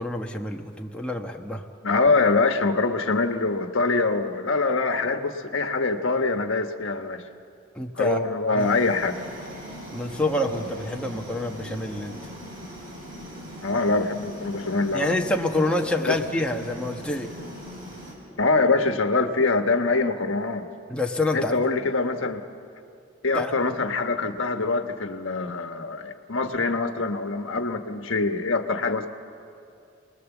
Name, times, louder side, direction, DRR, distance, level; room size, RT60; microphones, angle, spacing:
voice 1, 0.0-1.6 7.7-8.2 8.5-8.7 9.9-12.2 14.9-17.3 20.9-21.6 23.3-23.5, left 1 dB, 5° left, 0 dB, 1.2 m, -27 dB
voice 2, 1.8-7.2 7.9-9.2 13.6-15.2 16.1-16.2 18.4-20.7 21.3-22.4 23.2-29.1, left 3 dB, 80° left, 6 dB, 1.3 m, -24 dB
sound 1, 8.6-18.1, equal, 50° right, 6.7 m, -40 dB
29.0 x 20.0 x 7.2 m, 2.6 s
head